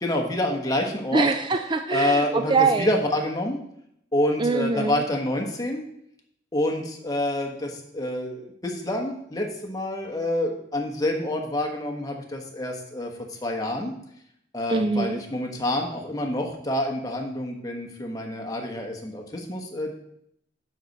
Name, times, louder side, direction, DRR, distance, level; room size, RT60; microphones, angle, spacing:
voice 1, 0.0-1.3 1.9-3.6 4.1-5.8 6.5-13.9 14.5-19.9, left 1 dB, 20° left, 2 dB, 1.3 m, -27 dB
voice 2, 1.1-2.9 4.4-5.0 14.7-15.2, right 4 dB, 25° right, 7 dB, 0.4 m, -23 dB
9.7 x 6.6 x 4.2 m, 0.75 s
head